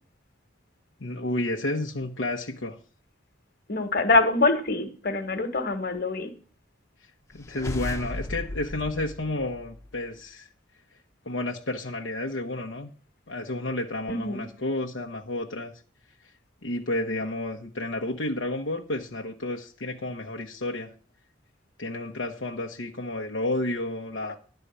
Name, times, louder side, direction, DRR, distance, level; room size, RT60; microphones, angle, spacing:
voice 1, 1.0-2.8 7.3-10.5 11.3-12.9 13.3-15.7 16.6-20.9 21.8-24.4, left 2 dB, 75° left, 1.0 m, -31 dB
voice 2, 3.7-6.3 14.1-14.4, left 2 dB, 50° left, 1.5 m, -24 dB
sound 1, 7.3-10.1, left 1 dB, 15° left, 0.8 m, -36 dB
11.0 x 4.5 x 8.1 m
head